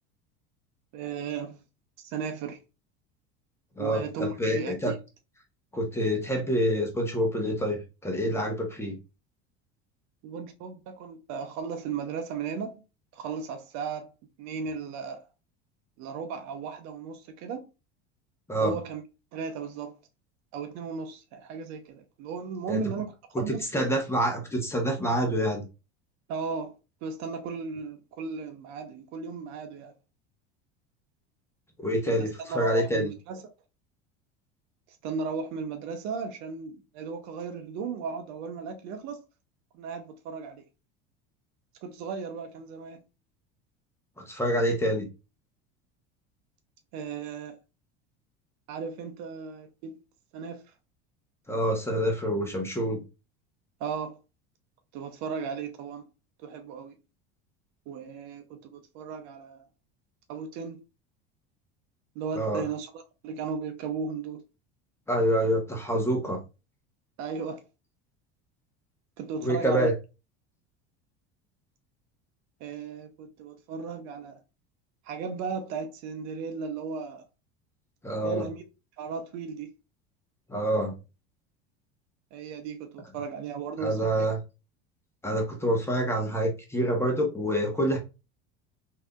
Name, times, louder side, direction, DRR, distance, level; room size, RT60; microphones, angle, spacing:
voice 1, 0.9-1.6 2.0-2.6 3.8-5.0 10.2-12.8 13.1-14.1 14.4-15.3 16.0-17.7 18.6-19.0 19.3-20.0 20.5-23.7 26.3-26.7 27.0-29.9 32.1-33.4 35.0-39.2 39.7-40.7 41.8-43.0 46.9-47.6 48.7-50.0 50.3-50.6 53.8-54.2 54.9-56.1 56.4-57.0 57.9-59.7 60.3-60.8 62.1-64.4 67.2-67.6 69.2-69.9 72.6-74.4 75.0-77.2 78.2-78.6 79.0-79.7 82.3-84.3, right 5 dB, 60° right, 0.7 m, -36 dB
voice 2, 3.8-4.9 5.7-9.0 18.5-18.7 22.7-22.8 23.7-25.6 31.8-33.1 44.2-45.1 51.5-53.0 62.4-62.6 65.1-66.4 69.4-69.9 78.0-78.5 80.5-81.0 83.8-84.4 85.2-88.0, equal, 10° left, 1.0 m, -27 dB
3.3 x 2.8 x 2.3 m
supercardioid pair, 100°, 31 cm